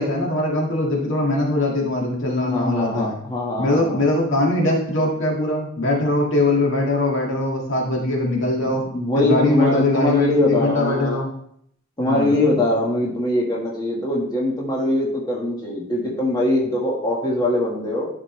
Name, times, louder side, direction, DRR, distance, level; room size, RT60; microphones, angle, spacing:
voice 1, 0.0-3.2 3.6-8.8 9.2-11.3 12.0-12.3, left 2 dB, 65° left, -1 dB, 1.9 m, -21 dB
voice 2, 2.5-4.1 8.6-11.2 12.0-18.1, left 1 dB, 20° left, -4 dB, 1.6 m, -22 dB
11.5 x 5.2 x 3.2 m, 0.68 s
head